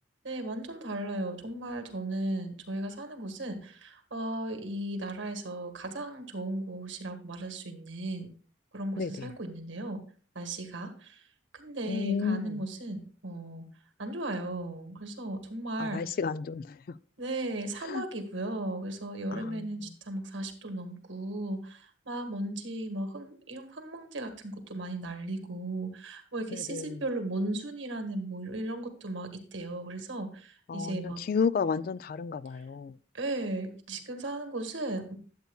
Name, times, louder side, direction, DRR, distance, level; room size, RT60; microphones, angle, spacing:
voice 1, 0.2-8.3 8.7-10.0 10.3-11.2 11.5-13.7 14.0-16.0 17.2-31.2 32.5-32.6 33.1-35.2, right 1 dB, 75° right, 1.6 m, -36 dB
voice 2, 9.0-9.3 11.9-12.6 15.8-17.0 17.8-18.0 19.3-19.6 26.5-27.0 30.7-32.9, left 5 dB, 50° left, 0.3 m, -32 dB
12.5 x 8.1 x 2.3 m
head